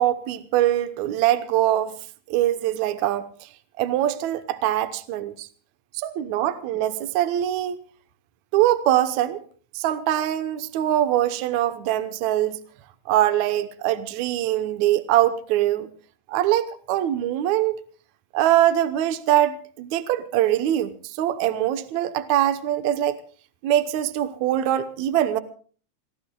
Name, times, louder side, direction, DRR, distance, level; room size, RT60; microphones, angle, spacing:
voice 1, 0.0-2.0 2.3-3.5 3.8-5.5 5.9-7.8 8.5-9.4 9.7-12.6 13.1-15.9 16.3-17.8 18.3-23.2 23.6-25.4, right 12 dB, 70° right, 2.2 m, -23 dB
28.0 x 19.0 x 2.3 m
omnidirectional pair, 3.7 m